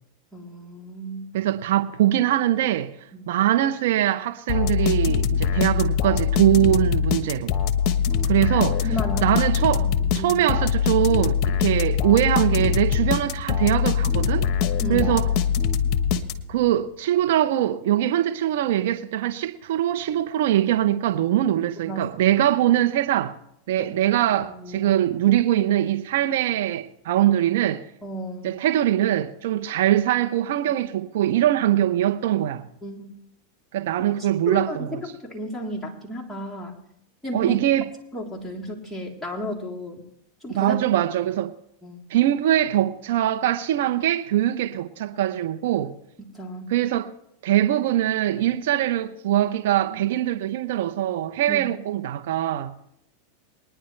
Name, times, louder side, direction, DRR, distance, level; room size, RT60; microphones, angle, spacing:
voice 1, 0.3-1.3 3.1-3.3 8.2-8.5 8.9-9.4 9.7-10.4 14.8-15.1 21.8-22.4 23.8-24.9 28.0-28.5 32.8-33.1 34.2-36.7 37.2-37.6 38.1-40.0 40.4-40.8 41.8-42.0 46.3-46.7 51.5-51.6, equal, ahead, 3.5 m, -34 dB
voice 2, 1.3-2.9 3.3-7.5 8.2-8.9 9.2-9.9 10.1-14.5 14.9-15.3 16.5-23.3 23.7-27.8 28.4-32.6 33.7-35.0 37.3-37.9 40.5-41.5 42.1-45.9 46.7-47.1 47.4-52.7, right 12 dB, 70° right, 0.8 m, -22 dB
sound 1, 4.5-16.7, left 7 dB, 45° left, 1.2 m, -23 dB
21.5 x 10.0 x 3.3 m
hypercardioid pair, 105°, 0 cm